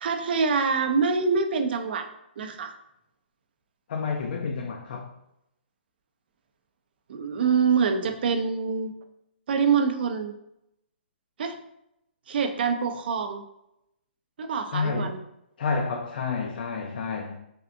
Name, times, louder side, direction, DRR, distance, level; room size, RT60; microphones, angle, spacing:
voice 1, 0.0-2.1 2.4-2.7 7.1-9.0 9.5-10.3 11.4-11.6 12.3-13.4 14.4-15.2, right 5 dB, 60° right, 0.4 m, -25 dB
voice 2, 3.9-5.1 14.7-15.2 15.6-17.4, left 4 dB, 55° left, 0.4 m, -29 dB
3.4 x 2.5 x 2.6 m
hypercardioid pair, 150°, 6 cm